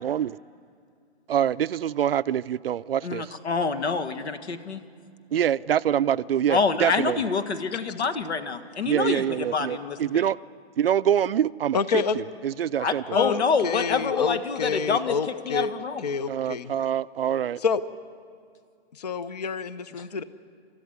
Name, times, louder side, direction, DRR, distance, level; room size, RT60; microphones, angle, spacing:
voice 1, 0.0-0.4 1.3-3.3 5.3-7.2 8.9-10.4 10.8-11.8 12.2-13.0 16.3-17.6, right 9 dB, 60° right, 0.5 m, -25 dB
voice 2, 3.0-4.8 6.5-10.3 12.8-15.2 15.5-16.0 20.0-20.1, left 5 dB, 85° left, 1.8 m, -27 dB
voice 3, 11.7-12.2 13.1-15.7 16.0-16.7 17.6-17.8 18.9-20.2, left 5 dB, 40° left, 0.6 m, -28 dB
29.0 x 13.5 x 9.4 m
hypercardioid pair, 175°, 32 cm